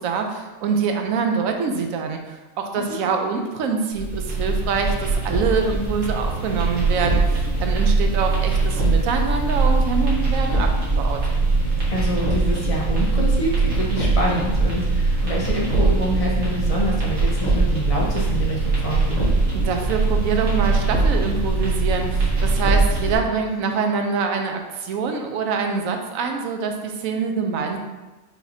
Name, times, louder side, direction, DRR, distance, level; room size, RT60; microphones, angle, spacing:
voice 1, 0.0-10.7 11.0-11.2 19.5-27.8, right 5 dB, 90° right, 4 dB, 1.0 m, -25 dB
sound 1, 3.9-23.1, right 3 dB, 55° right, 1.5 m, -21 dB
voice 2, 11.9-19.3, equal, 30° left, -4 dB, 0.8 m, -26 dB
5.6 x 3.0 x 2.7 m, 1.2 s
omnidirectional pair, 1.4 m